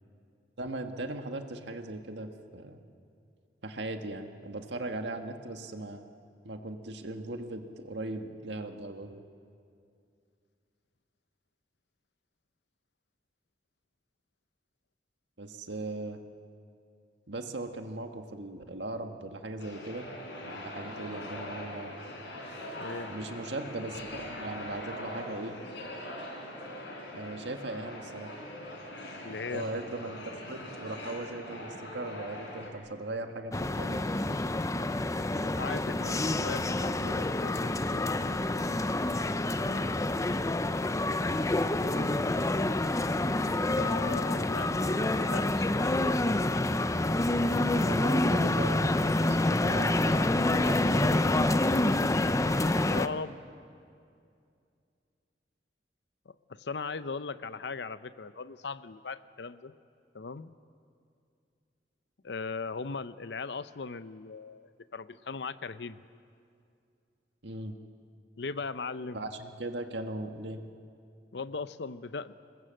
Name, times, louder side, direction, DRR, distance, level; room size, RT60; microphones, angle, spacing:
voice 1, 0.6-2.8 3.6-6.0 6.4-9.2 15.4-16.2 17.3-20.1 20.4-22.0 23.1-25.6 27.1-28.3 29.5-34.1 39.7-40.0 47.7-51.5 67.4-67.8 69.1-70.6, right 2 dB, 80° right, 5 dB, 1.7 m, -39 dB
sound 1, 19.6-32.7, left 1 dB, 85° left, 4.9 m, -42 dB
voice 2, 22.8-23.1 29.2-29.6 35.4-38.7 41.8-42.2 43.8-45.9 52.9-53.4 56.3-59.7 60.1-60.5 62.2-66.0 68.4-69.3 71.3-72.3, left 4 dB, 70° left, 13 dB, 0.7 m, -39 dB
sound 2, 33.5-53.1, left 2 dB, 20° left, 0.6 m, -27 dB
26.5 x 21.0 x 7.7 m, 2.4 s
head